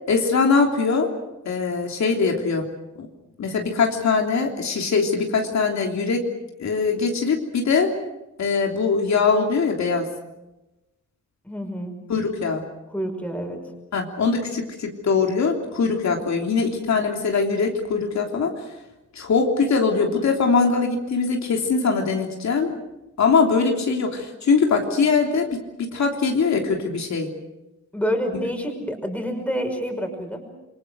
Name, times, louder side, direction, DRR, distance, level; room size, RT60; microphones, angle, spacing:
voice 1, 0.1-1.1 1.4-2.7 3.0-3.1 3.4-6.2 6.6-7.9 8.4-10.1 12.1-12.6 13.9-18.7 19.1-22.7 23.2-27.3, left 4 dB, 65° left, 2 dB, 3.3 m, -22 dB
voice 2, 11.4-12.0 12.9-13.6 27.9-30.4, equal, 5° left, 3 dB, 5.5 m, -27 dB
28.0 x 23.5 x 6.5 m, 0.97 s
wide cardioid pair, 130°, 30 cm